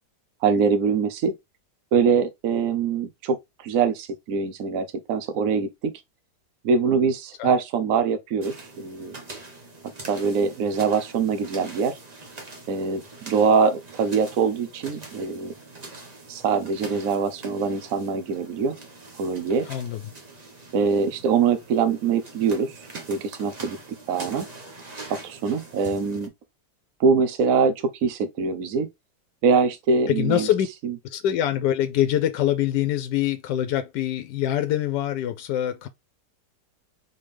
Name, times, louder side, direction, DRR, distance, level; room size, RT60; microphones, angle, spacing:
voice 1, 0.4-1.3 1.9-5.9 6.6-9.2 10.1-12.0 12.7-15.5 16.3-18.8 19.2-19.7 20.7-22.7 23.1-23.8 24.1-24.5 25.1-26.3 27.0-28.9 29.4-30.5 30.8-30.9, right 5 dB, 60° right, 1.1 m, -23 dB
sound 1, 8.4-26.3, right 2 dB, 30° right, 0.9 m, -43 dB
voice 2, 19.7-20.0 30.1-30.7 31.1-35.9, left 11 dB, 75° left, 1.1 m, -24 dB
4.2 x 3.6 x 3.2 m
omnidirectional pair, 1.9 m